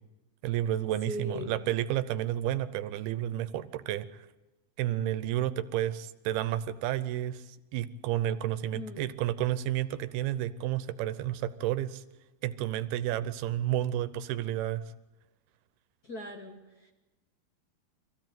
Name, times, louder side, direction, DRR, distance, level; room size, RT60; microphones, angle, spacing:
voice 1, 0.4-4.3 4.8-12.0 12.4-14.8, right 12 dB, 85° right, 14 dB, 2.8 m, -31 dB
voice 2, 1.1-1.6 8.7-9.1 16.0-16.9, equal, 30° left, 1 dB, 2.0 m, -39 dB
23.5 x 15.5 x 9.2 m, 1.0 s
omnidirectional pair, 4.4 m